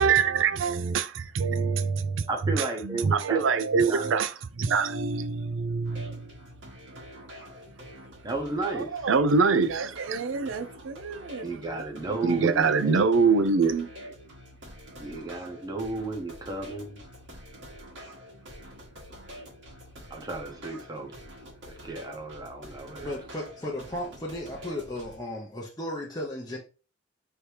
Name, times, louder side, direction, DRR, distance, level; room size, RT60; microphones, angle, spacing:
voice 1, 0.0-2.3 2.6-6.3 8.6-13.9, right 5 dB, 85° right, 0.5 m, -25 dB
voice 2, 2.3-3.4 3.9-4.1 8.2-9.1 11.4-13.1 15.0-17.0 20.1-21.1 21.8-23.1, right 2 dB, 20° right, 0.9 m, -33 dB
sound 1, 5.8-25.2, equal, 70° right, 1.5 m, -46 dB
voice 3, 23.0-26.6, left 1 dB, 20° left, 0.7 m, -35 dB
3.3 x 2.8 x 4.5 m
head